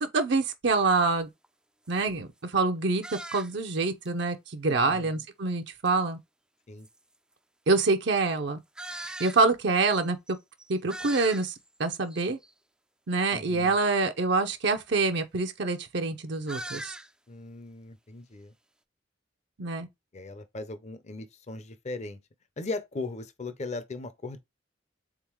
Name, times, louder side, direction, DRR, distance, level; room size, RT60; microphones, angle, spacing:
voice 1, 0.0-1.3 1.9-3.0 3.3-6.2 7.7-8.6 9.0-10.4 10.7-11.5 11.8-12.4 13.1-16.9 19.6-19.9, right 3 dB, 65° right, 0.7 m, -26 dB
sound 1, 0.7-0.9 1.4-1.5 1.9-2.1 3.0-3.7 4.0-4.1 5.8-5.9 6.8-6.9 8.7-9.4 9.9-10.0 10.3-10.4 10.6-11.7 12.1-12.5 16.5-17.1, right 1 dB, 5° right, 0.3 m, -40 dB
voice 2, 4.7-5.2 6.7-6.9 13.3-13.8 17.3-18.5 20.1-22.2 22.6-24.4, left 3 dB, 40° left, 0.6 m, -38 dB
3.9 x 3.6 x 3.0 m
head